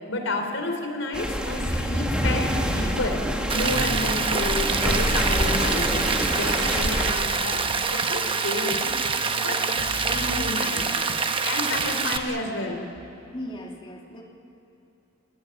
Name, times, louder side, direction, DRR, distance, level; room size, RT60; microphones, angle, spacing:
voice 1, 0.1-3.2 3.5-7.6 7.9-8.9 9.3-11.0 11.4-12.8, left 2 dB, 75° left, 4 dB, 3.9 m, -30 dB
sound 1, 1.1-7.1, equal, 5° right, 1.8 m, -26 dB
Rain, 3.5-12.2, right 5 dB, 25° right, 1.0 m, -26 dB
sound 2, 6.6-12.4, right 1 dB, 65° right, 1.3 m, -41 dB
voice 2, 13.3-14.2, equal, 25° left, 0 dB, 2.8 m, -37 dB
24.5 x 20.5 x 9.2 m, 2.7 s
head